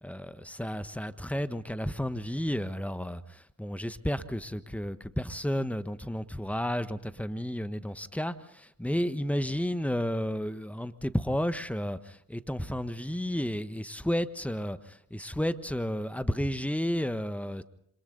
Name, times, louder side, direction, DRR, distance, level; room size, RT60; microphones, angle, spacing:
voice 1, 0.0-17.6, equal, 5° left, 1.4 m, -32 dB
27.5 x 26.0 x 4.0 m
hypercardioid pair, 55°, 48 cm